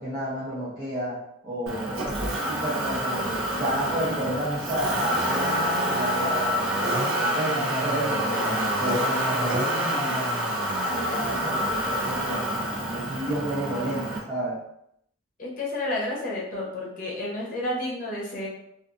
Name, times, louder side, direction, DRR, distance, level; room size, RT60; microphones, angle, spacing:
voice 1, 0.0-10.3 10.9-14.6, right 1 dB, 20° right, -12 dB, 0.7 m, -31 dB
Motor vehicle (road), 1.7-14.2, equal, 70° right, 0.7 m, -27 dB
voice 2, 15.4-18.5, left 1 dB, 40° left, -4 dB, 0.8 m, -30 dB
2.5 x 2.4 x 2.5 m, 0.76 s
head